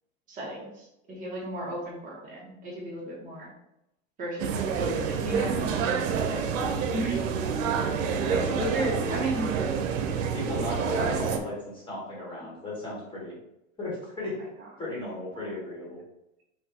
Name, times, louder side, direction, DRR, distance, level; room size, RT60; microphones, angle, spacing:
voice 1, 0.3-3.5 4.2-5.8 6.9-7.2 8.3-9.5 10.9-11.0, right 1 dB, 20° right, -4 dB, 1.4 m, -33 dB
sound 1, 4.4-11.4, right 6 dB, 80° right, 0.8 m, -28 dB
voice 2, 6.2-7.1 9.1-9.2 10.3-13.4 13.8-14.3 14.8-16.0, left 2 dB, 10° left, -6 dB, 1.6 m, -36 dB
5.6 x 2.7 x 3.5 m, 0.86 s
supercardioid pair, 150°, 39 cm